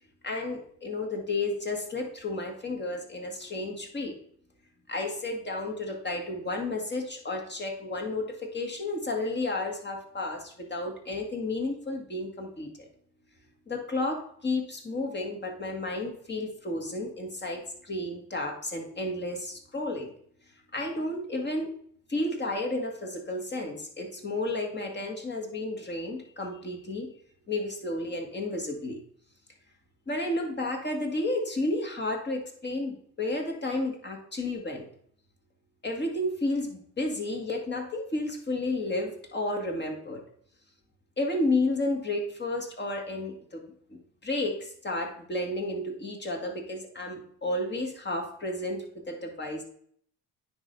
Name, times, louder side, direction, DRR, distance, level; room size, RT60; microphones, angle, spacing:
voice 1, 0.2-4.2 4.9-12.9 13.7-20.1 20.7-21.7 22.1-27.1 27.5-29.0 30.1-34.9 35.8-40.2 41.2-43.6 43.9-49.6, left 2 dB, 30° left, 2 dB, 2.0 m, -32 dB
9.3 x 3.4 x 5.3 m, 0.63 s
cardioid pair, 85°, 36 cm